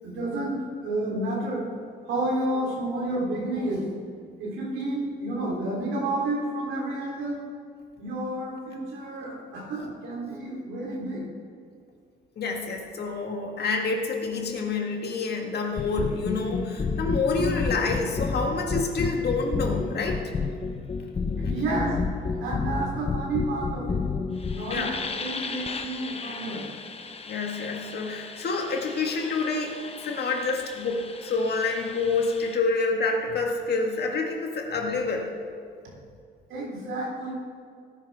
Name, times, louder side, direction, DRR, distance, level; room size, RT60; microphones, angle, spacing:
voice 1, 0.0-1.7 2.1-3.9 4.4-7.4 8.0-11.2 21.4-22.0 22.4-24.0 24.5-26.7 36.5-37.3, right 2 dB, 90° right, -3 dB, 3.5 m, -30 dB
voice 2, 12.4-20.2 24.7-25.0 27.2-35.3, left 3 dB, 55° left, 2 dB, 1.9 m, -28 dB
sound 1, 15.8-32.6, left 4 dB, 30° left, 0.9 m, -32 dB
17.0 x 10.5 x 3.6 m, 2.3 s
cardioid pair, 90°, 20 cm